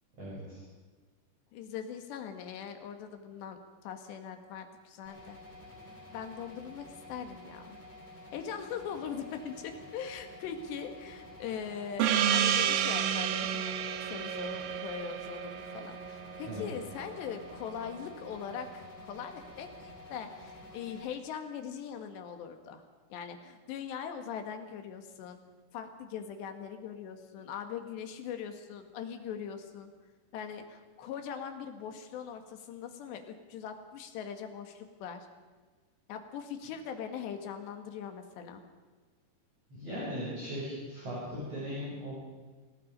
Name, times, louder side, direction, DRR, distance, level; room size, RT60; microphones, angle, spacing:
voice 1, 0.2-0.6 16.4-16.6 39.7-42.1, equal, 35° right, -7 dB, 7.8 m, -38 dB
voice 2, 1.5-5.4 6.1-7.8 8.3-13.8 14.0-22.8 23.1-25.4 25.7-29.9 30.3-35.3 36.1-38.6, left 7 dB, 75° left, 6 dB, 3.9 m, -41 dB
sound 1, 5.0-21.0, left 2 dB, 5° right, 6.9 m, -50 dB
Gong, 12.0-17.1, right 9 dB, 65° right, 2.5 m, -30 dB
27.0 x 18.5 x 5.4 m, 1.4 s
omnidirectional pair, 5.1 m